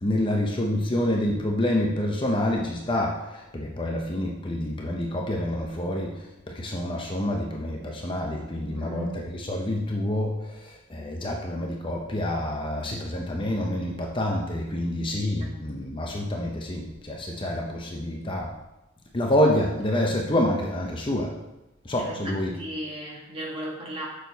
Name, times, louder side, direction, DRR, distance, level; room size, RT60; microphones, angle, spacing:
voice 1, 0.0-18.5 19.1-21.3 21.8-22.6, left 1 dB, 25° left, 0 dB, 0.7 m, -27 dB
voice 2, 8.7-9.2 22.0-24.1, right 1 dB, 25° right, -3 dB, 1.6 m, -36 dB
6.5 x 6.2 x 4.1 m, 0.96 s
head